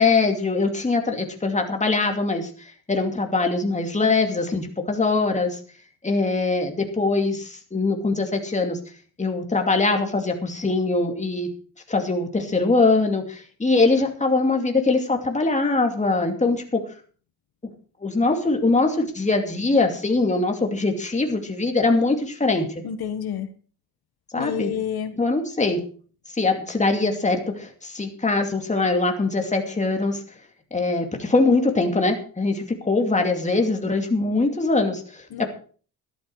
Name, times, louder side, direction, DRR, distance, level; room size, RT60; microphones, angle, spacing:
voice 1, 0.0-5.6 6.0-8.8 9.2-11.5 11.9-16.8 18.0-22.7 24.3-24.7 25.2-25.8 26.4-30.2 30.7-35.5, left 3 dB, 20° left, 3 dB, 2.6 m, -22 dB
voice 2, 22.8-23.5 24.4-25.1 35.3-35.5, left 8 dB, 75° left, 10 dB, 1.4 m, -29 dB
13.0 x 12.0 x 4.8 m, 0.41 s
cardioid pair, 115°, 38 cm